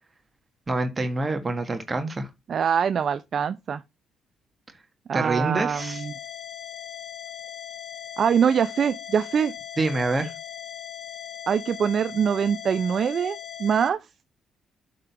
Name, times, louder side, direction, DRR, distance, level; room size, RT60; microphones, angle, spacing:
voice 1, 0.7-2.3 5.1-6.0 9.8-10.3, right 2 dB, 25° right, 1.5 m, -26 dB
voice 2, 2.5-3.8 5.1-6.1 8.2-9.5 11.5-14.0, right 7 dB, 55° right, 0.5 m, -23 dB
sound 1, 5.8-13.9, left 9 dB, 50° left, 1.5 m, -39 dB
8.0 x 3.7 x 5.8 m
cardioid pair, 90°, 0 cm